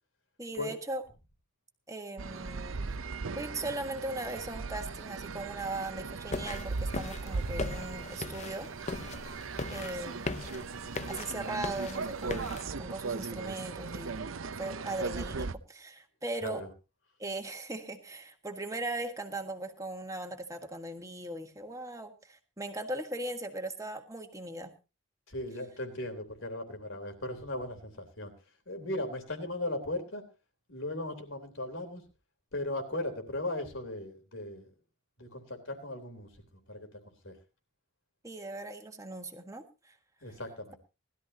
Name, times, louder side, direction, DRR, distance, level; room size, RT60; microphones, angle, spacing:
voice 1, 0.4-1.0 1.9-2.8 3.4-9.1 9.7-10.3 11.1-14.2 14.6-16.6 17.2-24.7 38.2-40.0, right 2 dB, 15° right, 5 dB, 1.6 m, -39 dB
sound 1, 2.2-15.5, right 4 dB, 75° right, 0.7 m, -38 dB
sound 2, 6.3-12.7, left 3 dB, 35° left, 0.6 m, -39 dB
voice 2, 25.3-28.3 28.7-30.2 30.7-32.0 32.5-34.7 35.2-36.3 36.7-36.9 37.2-37.3 40.2-40.8, left 1 dB, 70° left, 7 dB, 3.5 m, -37 dB
20.0 x 13.0 x 2.9 m, 0.30 s
head